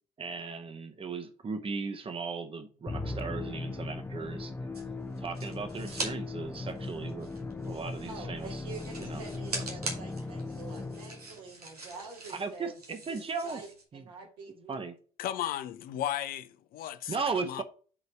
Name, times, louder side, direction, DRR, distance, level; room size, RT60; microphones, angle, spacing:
voice 1, 0.2-4.5 5.2-7.3 7.6-8.6 9.0-9.2 9.5-10.0 12.3-13.6 13.9-14.0 14.7-14.9 17.1-17.6, right 4 dB, 30° right, 1.1 m, -37 dB
Musical instrument, 2.9-11.4, left 3 dB, 10° left, 0.8 m, -38 dB
sound 1, 4.7-6.1 6.5-13.8, right 2 dB, 90° right, 1.1 m, -42 dB
voice 2, 8.1-12.8 13.1-14.8, right 4 dB, 70° right, 1.9 m, -47 dB
voice 3, 15.2-17.2 17.4-17.6, left 11 dB, 50° left, 0.5 m, -35 dB
5.0 x 4.0 x 5.9 m
figure-of-eight pair, 50°, 19 cm